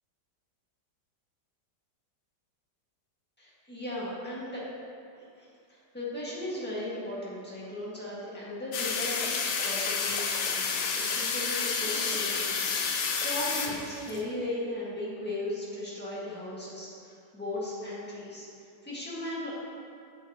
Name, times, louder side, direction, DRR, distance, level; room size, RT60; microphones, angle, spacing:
voice 1, 3.4-4.6 5.1-18.5 18.8-19.5, left 1 dB, 5° left, -8 dB, 1.5 m, -37 dB
sound 1, 8.7-14.2, left 5 dB, 75° left, 1.3 m, -30 dB
8.2 x 7.4 x 2.9 m, 2.4 s
omnidirectional pair, 1.9 m